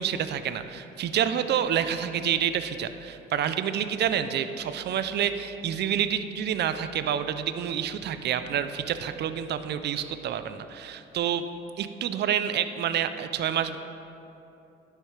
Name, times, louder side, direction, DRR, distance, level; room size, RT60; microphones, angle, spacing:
voice 1, 0.0-11.4 11.8-13.8, right 9 dB, 60° right, 11 dB, 0.5 m, -28 dB
11.0 x 6.4 x 3.2 m, 2.8 s
cardioid pair, 90°, 20 cm